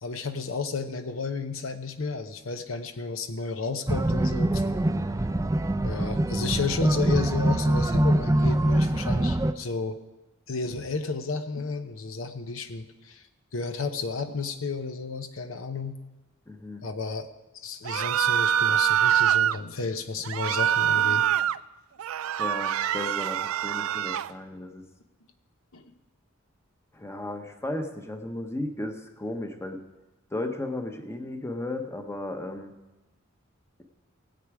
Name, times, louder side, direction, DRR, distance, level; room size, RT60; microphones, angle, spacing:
voice 1, 0.0-4.6 5.8-10.0 10.5-13.2 13.5-16.0 16.8-17.3 17.5-21.3 25.7-25.9, left 4 dB, 70° left, 8 dB, 0.8 m, -32 dB
sound 1, 3.9-9.5, right 1 dB, 15° right, 0.4 m, -24 dB
voice 2, 16.5-16.9 22.4-24.8 26.9-29.8 30.3-32.7, left 1 dB, 15° left, 6 dB, 0.9 m, -35 dB
sound 2, 17.8-19.6 20.2-21.6 22.0-24.3, right 10 dB, 75° right, 0.3 m, -24 dB
18.0 x 8.2 x 4.9 m, 1.1 s
head